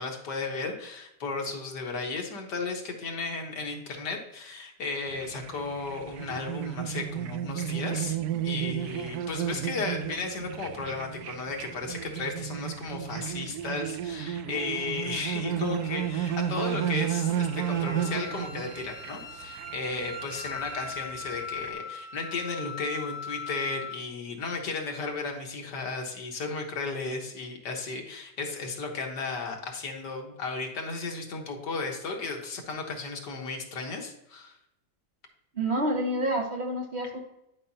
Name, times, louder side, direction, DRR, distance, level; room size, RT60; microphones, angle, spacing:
voice 1, 0.0-8.2 8.4-34.6, left 3 dB, 75° left, 1 dB, 2.0 m, -34 dB
sound 1, 5.1-21.7, right 10 dB, 70° right, 1.0 m, -33 dB
Wind instrument woodwind instrument, 15.8-24.0, left 4 dB, 50° left, 1.4 m, -41 dB
voice 2, 35.5-37.2, right 1 dB, 40° right, 0 dB, 1.5 m, -28 dB
11.0 x 5.3 x 2.8 m, 0.85 s
omnidirectional pair, 1.8 m